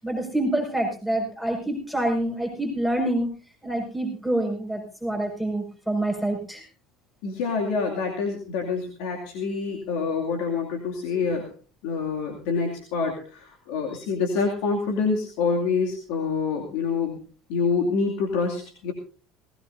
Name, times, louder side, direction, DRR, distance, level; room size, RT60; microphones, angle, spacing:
voice 1, 0.0-3.3 3.6-6.7, right 1 dB, 5° left, 1 dB, 5.7 m, -26 dB
voice 2, 7.2-11.5 11.8-17.2 17.5-18.9, left 5 dB, 70° left, 1 dB, 2.5 m, -26 dB
19.0 x 18.0 x 2.7 m, 0.37 s
hypercardioid pair, 75°, 0 cm